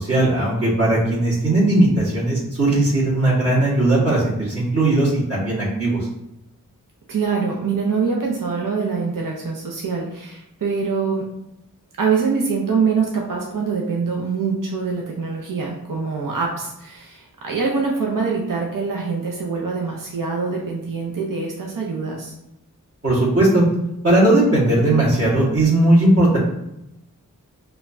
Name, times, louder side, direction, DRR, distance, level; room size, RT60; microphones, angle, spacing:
voice 1, 0.0-6.0 23.0-23.6 24.0-26.4, right 1 dB, 45° right, -9 dB, 1.4 m, -18 dB
voice 2, 7.1-11.2 12.0-22.3, right 5 dB, 70° right, -1 dB, 0.7 m, -24 dB
4.9 x 2.3 x 2.6 m, 0.85 s
wide cardioid pair, 50°, 34 cm